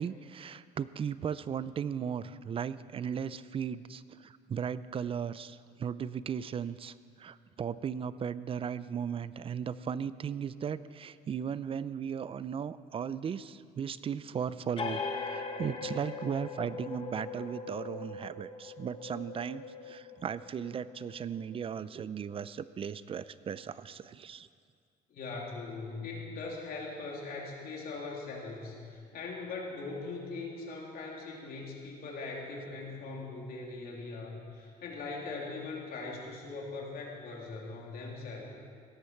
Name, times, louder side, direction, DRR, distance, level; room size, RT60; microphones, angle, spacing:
voice 1, 0.0-24.5, right 7 dB, 35° right, 16 dB, 0.4 m, -36 dB
sound 1, 14.8-22.0, left 4 dB, 30° left, 1.4 m, -40 dB
voice 2, 25.1-38.4, left 3 dB, 60° left, -2 dB, 3.1 m, -40 dB
17.0 x 13.0 x 4.5 m, 2.2 s
cardioid pair, 110°, 17 cm